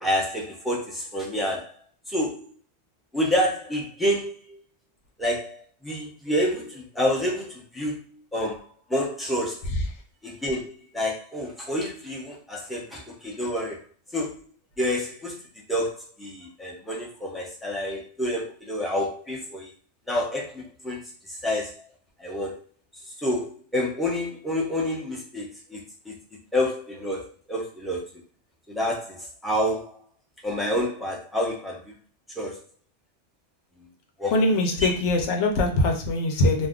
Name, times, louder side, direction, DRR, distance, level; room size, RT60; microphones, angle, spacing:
voice 1, 0.0-1.7 2.1-2.4 3.1-4.6 5.2-8.0 8.3-8.6 8.9-9.6 10.2-13.8 14.1-14.3 14.8-15.3 15.7-19.7 20.1-21.0 21.3-21.7 22.2-22.6 23.2-26.2 26.5-28.0 28.7-29.2 29.4-29.9 30.4-31.9 32.4-32.6 34.2-34.3, left 1 dB, ahead, -3 dB, 0.5 m, -28 dB
voice 2, 34.3-36.7, left 2 dB, 80° left, 3 dB, 1.0 m, -22 dB
2.6 x 2.3 x 3.6 m, 0.40 s
omnidirectional pair, 1.2 m